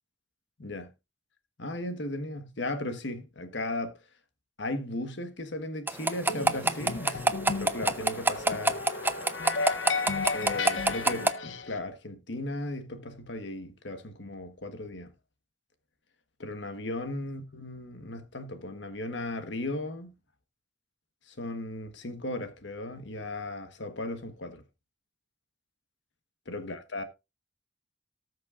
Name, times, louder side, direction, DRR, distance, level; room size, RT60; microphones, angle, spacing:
voice 1, 0.6-0.9 1.6-4.0 4.6-7.2 7.6-8.8 10.3-15.1 16.4-20.1 21.3-24.6 26.5-27.0, left 2 dB, 70° left, 1.4 m, -36 dB
sound 1, 5.9-11.3, right 2 dB, 10° right, 0.7 m, -24 dB
sound 2, 6.3-11.8, left 4 dB, 85° left, 0.9 m, -34 dB
18.5 x 6.3 x 2.5 m
head